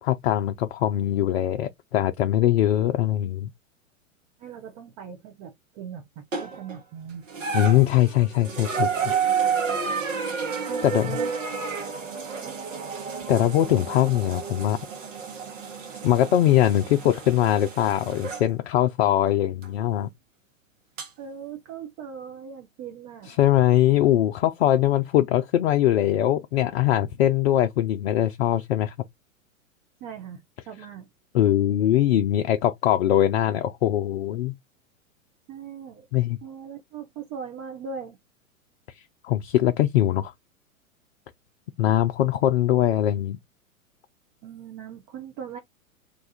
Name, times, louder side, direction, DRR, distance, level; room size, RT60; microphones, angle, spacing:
voice 1, 0.0-3.5 7.5-9.1 10.8-11.2 13.3-14.8 16.0-20.1 23.3-28.9 31.3-34.5 36.1-36.4 39.2-40.3 41.8-43.4, left 12 dB, 50° left, 0.5 m, -22 dB
voice 2, 4.4-7.2 10.7-11.3 12.4-12.6 21.2-23.4 30.0-31.1 35.5-36.1 36.4-38.2 44.4-45.6, right 7 dB, 20° right, 0.4 m, -39 dB
sound 1, 6.3-6.8 7.3-18.5 19.6-19.7 21.0-21.1, right 6 dB, 65° right, 1.1 m, -30 dB
2.7 x 2.3 x 3.9 m
figure-of-eight pair, 105°, 41 cm